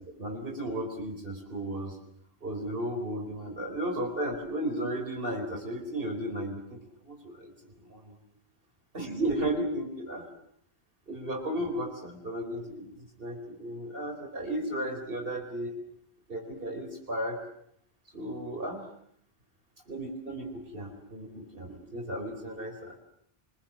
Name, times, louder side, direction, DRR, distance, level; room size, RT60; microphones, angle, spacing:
voice 1, 0.1-2.0 2.4-8.2 8.9-10.3 11.1-15.8 16.3-17.4 18.1-18.9 19.9-23.0, right 1 dB, 60° right, 3 dB, 4.7 m, -34 dB
26.0 x 21.5 x 7.5 m, 0.67 s
omnidirectional pair, 1.1 m